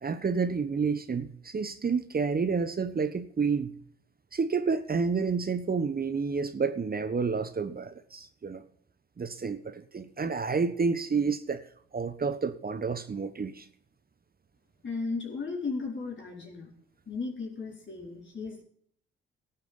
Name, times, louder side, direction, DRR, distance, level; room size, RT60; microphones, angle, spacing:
voice 1, 0.0-3.8 4.3-8.6 9.2-11.6 11.9-13.7, right 5 dB, 30° right, 1.1 m, -29 dB
voice 2, 14.8-16.7 17.1-18.6, left 4 dB, 40° left, 4.4 m, -35 dB
17.5 x 7.4 x 5.3 m
hypercardioid pair, 45°, 30 cm